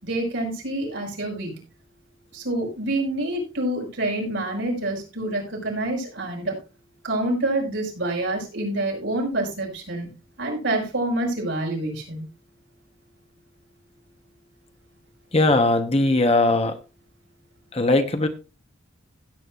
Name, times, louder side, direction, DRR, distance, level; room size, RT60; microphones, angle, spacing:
voice 1, 0.0-1.6 2.3-6.6 7.0-12.3, right 1 dB, 70° right, 5.5 m, -27 dB
voice 2, 15.3-16.8 17.7-18.3, left 2 dB, 30° left, 1.1 m, -19 dB
16.5 x 8.6 x 2.5 m
head